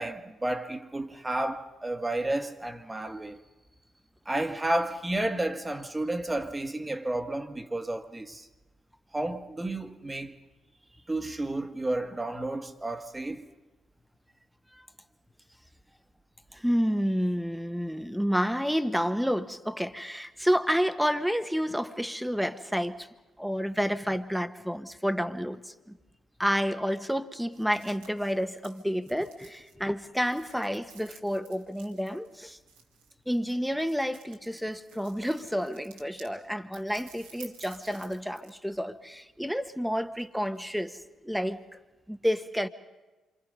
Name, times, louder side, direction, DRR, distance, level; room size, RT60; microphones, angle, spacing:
voice 1, 0.0-3.4 4.3-8.5 9.1-10.4 11.1-13.5, right 1 dB, 20° right, 1.8 m, -31 dB
voice 2, 16.5-23.1 23.4-26.0 26.4-32.6 33.3-41.0 41.2-41.6 42.1-42.7, equal, ahead, 1.5 m, -30 dB
sound 1, 27.5-36.3 36.7-38.6 38.9-40.7, right 6 dB, 80° right, 2.6 m, -55 dB
27.5 x 25.0 x 5.5 m
hypercardioid pair, 40°, 0 cm